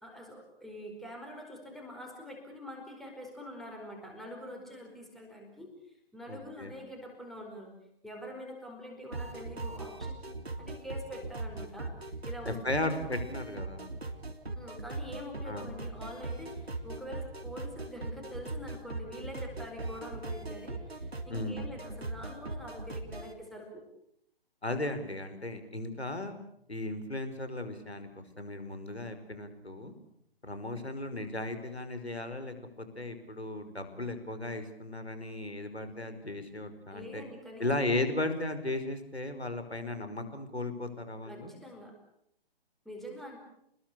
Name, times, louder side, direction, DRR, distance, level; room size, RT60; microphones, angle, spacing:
voice 1, 0.0-7.8 8.0-10.3 10.6-12.9 14.5-23.8 36.9-37.7 41.2-42.0 42.8-43.4, equal, ahead, 1 dB, 4.8 m, -45 dB
voice 2, 6.3-6.7 12.5-13.9 15.5-15.7 21.3-21.6 24.6-26.3 26.7-29.9 30.4-37.2 37.6-41.5, left 2 dB, 85° left, 9 dB, 5.3 m, -36 dB
sound 1, 9.1-23.3, right 2 dB, 75° right, 3.5 m, -39 dB
28.5 x 21.0 x 8.4 m, 0.73 s
figure-of-eight pair, 135°, 31 cm